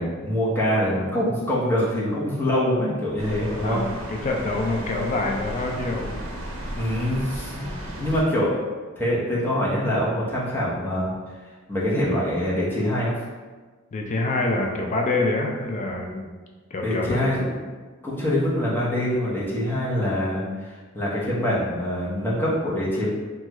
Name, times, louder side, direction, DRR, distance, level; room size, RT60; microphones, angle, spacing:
voice 1, 0.0-3.8 6.7-8.6 9.0-11.1 11.7-13.2 16.8-17.5 18.0-23.1, equal, 10° left, -7 dB, 0.7 m, -24 dB
voice 2, 1.8-2.2 3.4-6.1 7.6-7.9 13.9-16.3 16.7-17.3, left 2 dB, 35° left, 1 dB, 0.3 m, -27 dB
sound 1, 3.2-8.2, right 1 dB, 75° right, 0.6 m, -34 dB
3.0 x 2.3 x 2.9 m, 1.3 s
head